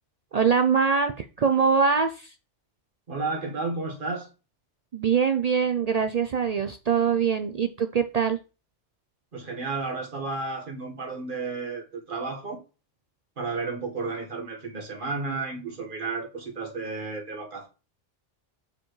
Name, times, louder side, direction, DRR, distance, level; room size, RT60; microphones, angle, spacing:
voice 1, 0.3-2.3 4.9-8.4, right 6 dB, 65° right, 0.4 m, -23 dB
voice 2, 3.1-4.3 9.3-12.6 13.4-17.7, right 3 dB, 45° right, 1.6 m, -32 dB
7.4 x 4.6 x 3.1 m
omnidirectional pair, 1.2 m